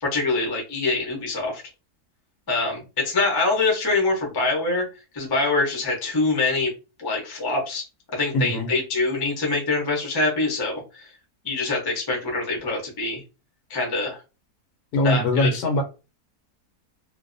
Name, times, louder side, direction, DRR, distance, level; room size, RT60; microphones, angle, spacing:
voice 1, 0.0-1.6 2.5-4.8 5.1-6.7 7.0-7.8 8.1-11.1 11.4-13.2 13.7-14.2 15.0-15.5, left 3 dB, 25° left, 0.5 m, -24 dB
voice 2, 8.3-8.7 14.9-15.8, left 1 dB, 75° left, 1.1 m, -21 dB
2.6 x 2.2 x 2.5 m
omnidirectional pair, 1.7 m